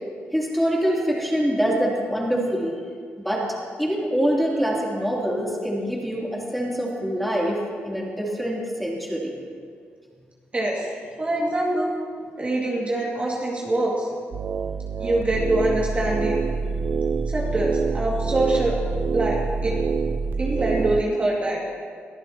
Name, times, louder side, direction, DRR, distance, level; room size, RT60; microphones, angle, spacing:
voice 1, 0.3-2.8 3.2-3.4 3.8-9.3, equal, ahead, -4 dB, 3.4 m, -24 dB
voice 2, 10.5-10.9 11.2-11.9 12.4-14.1 15.0-16.4 17.3-18.8 19.1-19.7 20.4-21.6, right 1 dB, 30° right, -4 dB, 2.4 m, -24 dB
sound 1, 14.3-21.0, right 5 dB, 50° right, 0.4 m, -26 dB
23.0 x 14.5 x 3.0 m, 2.1 s
cardioid pair, 100°, 4 cm